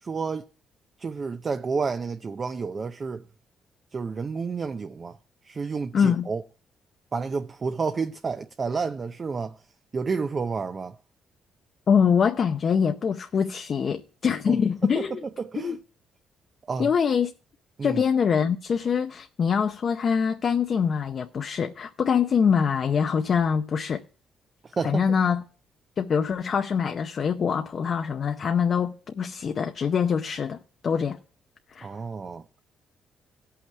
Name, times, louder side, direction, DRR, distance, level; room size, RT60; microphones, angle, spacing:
voice 1, 0.0-0.5 1.0-3.2 3.9-5.2 5.4-6.4 7.1-9.6 9.9-11.0 14.5-15.8 16.7-16.9 17.8-18.0 24.6-25.2 31.8-32.4, right 5 dB, 40° right, 0.6 m, -30 dB
voice 2, 5.9-6.3 11.9-15.2 15.6-15.8 16.8-17.3 17.8-24.0 24.8-25.4 26.0-30.6 30.8-31.2 31.7-31.9, left 6 dB, 50° left, 0.7 m, -24 dB
16.5 x 5.7 x 4.6 m
cardioid pair, 90°, 0 cm